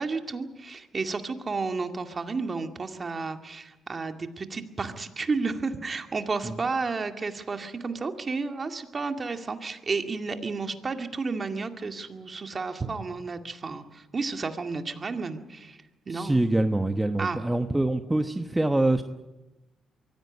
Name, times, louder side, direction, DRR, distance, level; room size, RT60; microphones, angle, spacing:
voice 1, 0.0-16.4 17.2-17.4, right 4 dB, 35° right, 6 dB, 2.2 m, -32 dB
voice 2, 16.1-19.0, right 2 dB, 10° right, 7 dB, 1.1 m, -25 dB
23.5 x 16.5 x 9.7 m, 1.1 s
cardioid pair, 90°, 0 cm